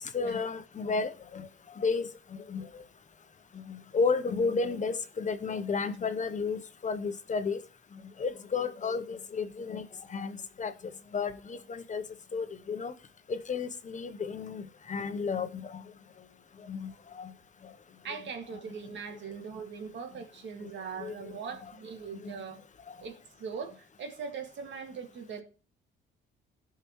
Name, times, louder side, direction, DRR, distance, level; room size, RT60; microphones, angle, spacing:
voice 1, 0.1-1.5 1.8-2.1 2.5-2.7 3.7-7.6 8.2-9.8 10.1-10.7 11.1-12.0 12.3-12.9 13.3-15.8 16.7-16.9 17.2-17.3 21.0-21.1 22.2-22.3, left 4 dB, 40° left, 0.8 m, -32 dB
voice 2, 18.0-22.6 23.0-25.4, right 6 dB, 65° right, 2.1 m, -41 dB
15.0 x 5.9 x 3.1 m
cardioid pair, 90°, 20 cm